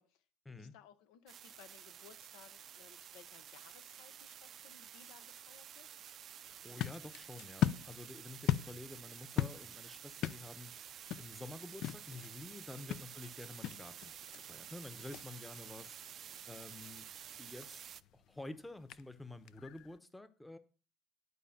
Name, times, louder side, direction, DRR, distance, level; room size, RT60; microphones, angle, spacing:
voice 1, 0.0-5.9 12.7-13.0 14.5-14.7, left 10 dB, 80° left, 1.0 m, -61 dB
sound 1, 1.3-18.0, right 10 dB, 50° right, 0.4 m, -51 dB
sound 2, 6.4-20.0, left 11 dB, 65° left, 0.5 m, -41 dB
voice 2, 6.6-10.9 11.2-16.0 16.5-17.1 17.4-17.8 18.1-20.6, left 2 dB, 10° left, 0.9 m, -50 dB
11.0 x 5.1 x 5.8 m
supercardioid pair, 95°, 0 cm